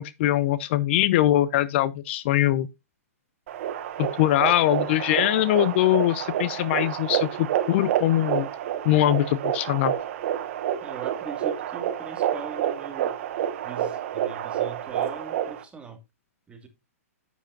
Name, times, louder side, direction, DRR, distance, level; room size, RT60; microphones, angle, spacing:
voice 1, 0.0-2.7 4.0-8.5 8.8-9.9, left 14 dB, 50° left, 0.7 m, -22 dB
sound 1, 3.5-15.6, right 10 dB, 55° right, 1.4 m, -29 dB
voice 2, 10.8-13.2 13.6-16.0 16.5-16.7, right 5 dB, 15° right, 2.1 m, -41 dB
9.9 x 8.2 x 2.6 m
hypercardioid pair, 130°, 8 cm